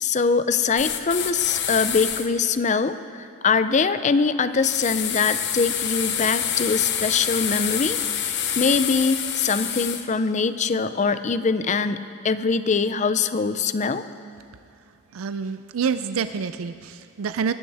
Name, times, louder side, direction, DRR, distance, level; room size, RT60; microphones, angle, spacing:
voice 1, 0.0-14.0, left 5 dB, 35° left, 12 dB, 0.5 m, -23 dB
sound 1, 0.7-2.3 4.6-10.0, left 9 dB, 55° left, 0.9 m, -27 dB
voice 2, 15.1-17.5, right 6 dB, 85° right, 11 dB, 0.4 m, -27 dB
20.5 x 15.5 x 3.5 m, 2.5 s
head